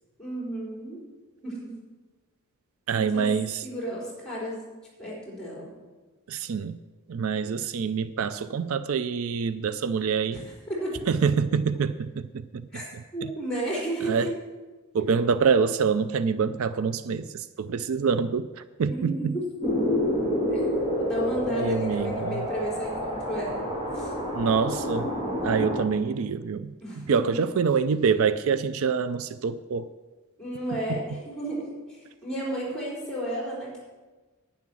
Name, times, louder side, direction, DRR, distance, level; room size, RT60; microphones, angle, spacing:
voice 1, 0.2-1.0 1.4-1.7 2.9-3.3 3.6-4.6 5.0-5.7 10.3-10.4 10.7-11.0 12.7-12.8 13.1-14.3 15.0-15.1 18.8-19.4 20.5-23.7 23.9-24.1 26.8-27.4 30.4-33.8, right 1 dB, 5° left, -5 dB, 4.3 m, -33 dB
voice 2, 2.9-3.7 6.3-6.8 7.1-10.4 11.1-12.7 14.0-14.3 14.9-18.9 19.2-19.3 21.5-22.4 24.3-25.1 25.4-29.9, right 6 dB, 70° right, 14 dB, 0.4 m, -26 dB
sound 1, 19.6-25.8, left 1 dB, 25° right, 2.2 m, -28 dB
10.5 x 9.7 x 6.3 m, 1.3 s
head